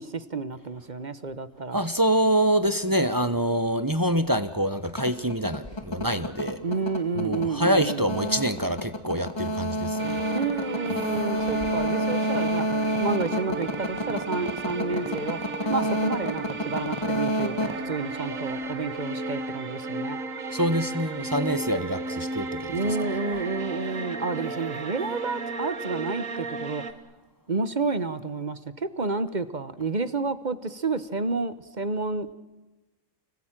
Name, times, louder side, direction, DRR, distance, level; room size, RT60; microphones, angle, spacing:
voice 1, 0.0-1.9 6.6-8.2 10.3-12.7 13.0-15.4 15.7-20.2 22.7-26.8 27.5-32.3, right 3 dB, 35° right, 13 dB, 1.1 m, -30 dB
voice 2, 1.7-6.6 7.1-10.2 20.5-22.8, right 1 dB, 15° right, 11 dB, 1.1 m, -25 dB
sound 1, 4.8-18.7, equal, 20° left, 1.8 m, -29 dB
sound 2, 10.0-26.9, right 3 dB, 90° right, 1.9 m, -34 dB
29.5 x 19.5 x 9.0 m, 1.1 s
omnidirectional pair, 1.4 m